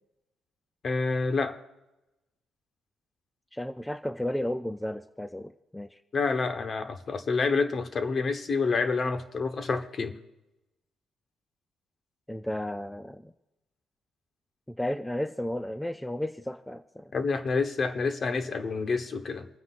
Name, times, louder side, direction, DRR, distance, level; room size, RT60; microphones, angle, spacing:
voice 1, 0.8-1.6 6.1-10.1 17.1-19.5, left 4 dB, 45° left, 8 dB, 1.2 m, -28 dB
voice 2, 3.5-6.0 12.3-13.3 14.8-17.1, left 1 dB, 5° left, 9 dB, 0.5 m, -33 dB
27.5 x 9.5 x 2.5 m, 0.98 s
cardioid pair, 90°, 0 cm